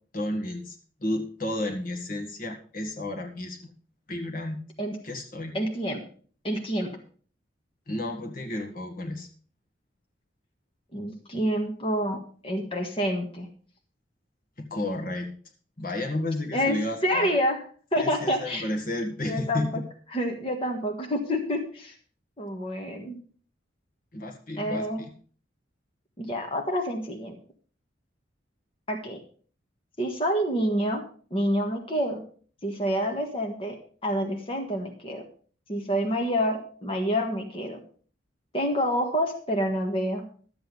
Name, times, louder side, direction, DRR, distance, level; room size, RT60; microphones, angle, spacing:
voice 1, 0.1-3.7 4.1-4.6 5.0-5.6 7.9-9.3 14.6-15.3 15.8-17.3 18.0-19.8 24.1-25.1, left 1 dB, 50° left, 4 dB, 1.7 m, -32 dB
voice 2, 5.5-6.0 6.4-6.9 10.9-13.5 16.5-17.6 17.9-18.6 19.2-19.8 20.1-21.9 22.4-23.2 24.6-25.0 26.2-27.4 28.9-29.2 30.0-31.0 31.3-32.2 32.6-33.8 34.0-35.2 35.7-37.8 38.5-40.2, equal, 30° left, 2 dB, 1.6 m, -28 dB
12.5 x 8.0 x 5.4 m, 0.43 s
head